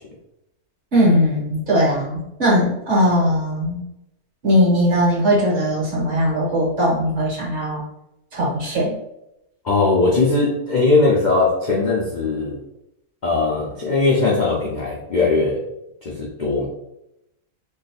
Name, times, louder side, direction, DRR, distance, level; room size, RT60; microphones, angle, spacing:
voice 1, 0.9-3.8 4.4-7.8 8.3-8.9, equal, 50° right, -5 dB, 1.6 m, -19 dB
voice 2, 9.6-12.6 13.2-15.6 16.0-16.7, left 3 dB, 55° left, -4 dB, 0.5 m, -19 dB
3.1 x 2.4 x 4.0 m, 0.84 s
omnidirectional pair, 1.6 m